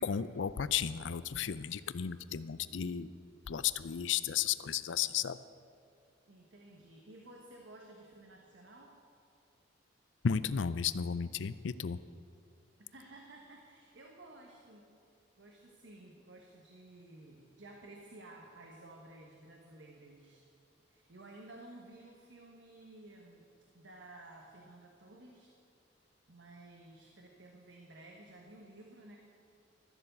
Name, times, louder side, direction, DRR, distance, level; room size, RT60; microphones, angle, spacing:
voice 1, 0.0-3.1 3.5-5.4 10.2-12.0, left 8 dB, 75° left, 15 dB, 0.5 m, -34 dB
voice 2, 6.3-8.9 12.9-14.9 15.4-20.5 20.9-23.5 23.7-25.5 26.3-29.2, right 2 dB, 80° right, 0 dB, 1.3 m, -54 dB
14.0 x 7.1 x 7.9 m, 2.5 s
head